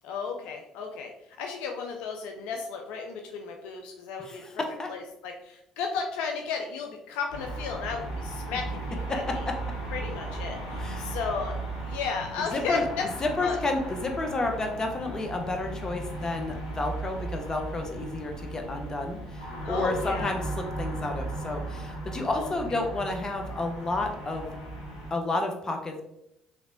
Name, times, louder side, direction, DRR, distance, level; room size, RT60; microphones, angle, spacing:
voice 1, 0.0-4.6 4.9-9.5 9.9-11.6 11.8-13.0 13.4-13.6 19.6-20.3 22.3-22.8, left 5 dB, 70° left, 3 dB, 0.3 m, -34 dB
voice 2, 4.2-4.9 9.1-9.4 10.8-11.2 12.5-12.9 13.2-24.6 25.1-26.0, left 2 dB, 30° left, 3 dB, 0.7 m, -31 dB
sound 1, 7.3-25.1, right 2 dB, 85° left, 0.9 m, -36 dB
3.2 x 3.0 x 2.5 m, 0.81 s
hypercardioid pair, 55°, 2 cm